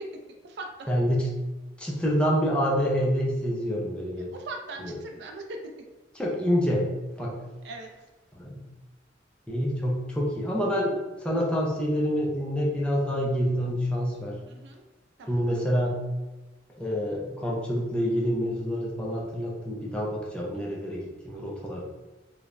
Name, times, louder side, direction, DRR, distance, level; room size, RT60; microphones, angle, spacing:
voice 1, 0.9-1.3 1.8-4.3 4.8-4.9 6.2-6.9 7.2-7.4 8.3-8.5 9.5-10.9 11.2-14.4 15.3-16.0 16.8-21.8, equal, 5° left, -4 dB, 0.4 m, -27 dB
voice 2, 4.3-5.6 7.6-7.9 14.5-14.8 15.2-15.5 20.5-20.8, right 2 dB, 70° right, 3 dB, 0.3 m, -40 dB
3.1 x 2.0 x 2.4 m, 1.1 s
head